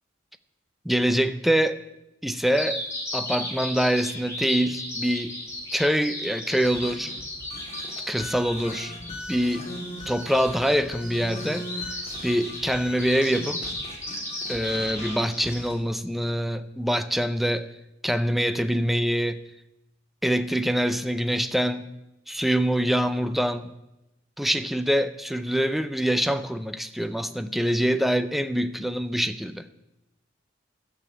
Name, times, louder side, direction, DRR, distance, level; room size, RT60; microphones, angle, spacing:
voice 1, 0.8-1.8 2.2-2.8 3.1-5.4 5.7-7.1 8.1-8.9 9.3-9.7 10.1-11.7 12.2-13.7 14.5-17.7 18.0-19.4 20.2-21.9 22.3-23.7 24.4-29.7, equal, ahead, 0.5 m, -25 dB
Bird vocalization bird call bird song, 2.5-15.6, left 1 dB, 15° left, 5.1 m, -35 dB
sound 1, 6.6-15.7, left 1 dB, 35° left, 2.2 m, -40 dB
13.0 x 7.0 x 8.2 m
head